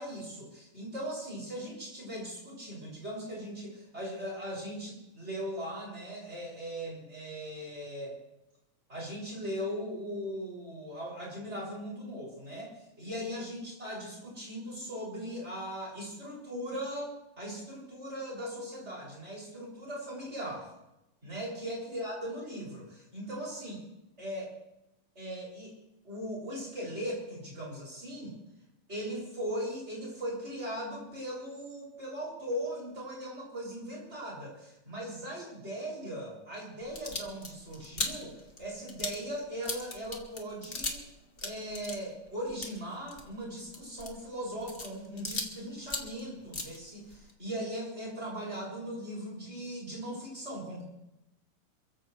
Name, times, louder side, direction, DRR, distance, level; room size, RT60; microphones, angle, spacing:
voice 1, 0.0-8.2 8.9-20.7 21.2-23.8 24.2-24.6 25.1-25.7 26.0-28.4 28.9-41.0 41.4-50.8, equal, 15° right, -4 dB, 6.9 m, -39 dB
sound 1, 36.8-41.1 41.3-45.6 45.8-47.3, left 3 dB, 35° left, 0.9 m, -39 dB
28.5 x 15.0 x 3.3 m, 0.91 s
omnidirectional pair, 3.9 m